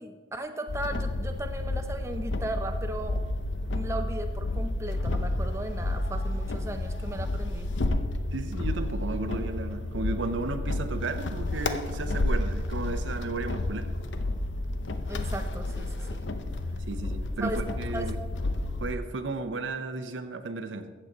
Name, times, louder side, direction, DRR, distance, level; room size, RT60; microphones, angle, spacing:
voice 1, 0.0-3.2 3.7-7.7 15.1-16.2 17.4-17.6 17.9-18.1, right 1 dB, 15° right, 5 dB, 0.6 m, -36 dB
sound 1, 0.7-18.9, left 2 dB, 85° left, 0.7 m, -31 dB
voice 2, 8.3-13.9 16.9-18.2 18.8-20.9, right 3 dB, 90° right, 8 dB, 0.7 m, -34 dB
14.5 x 7.3 x 3.9 m, 1.5 s
head